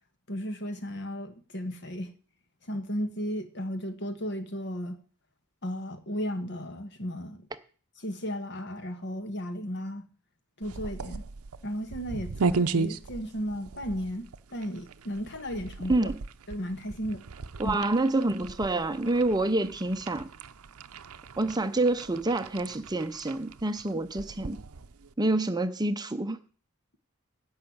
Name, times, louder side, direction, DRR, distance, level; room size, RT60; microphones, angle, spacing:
voice 1, 0.3-2.1 2.7-5.0 5.6-7.4 8.0-10.0 10.6-11.2 11.6-16.1 16.5-17.2 17.6-17.8, equal, 50° left, 1.5 m, -34 dB
sound 1, 10.6-25.1, right 4 dB, 80° right, 0.7 m, -36 dB
voice 2, 17.6-20.3 21.4-24.6 25.2-26.4, right 2 dB, 20° right, 0.6 m, -27 dB
11.0 x 6.3 x 8.7 m
head